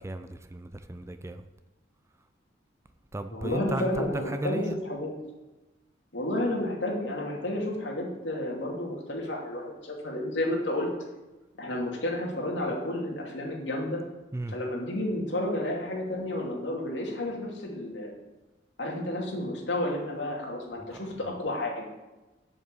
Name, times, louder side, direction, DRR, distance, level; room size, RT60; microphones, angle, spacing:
voice 1, 0.0-1.5 3.1-4.8 14.3-14.6 20.9-21.0, right 1 dB, 15° right, 9 dB, 0.5 m, -35 dB
voice 2, 3.3-5.1 6.1-10.9 11.6-14.0 14.5-18.1 18.8-21.9, left 1 dB, 70° left, -1 dB, 2.8 m, -31 dB
7.8 x 7.3 x 8.0 m, 1.1 s
head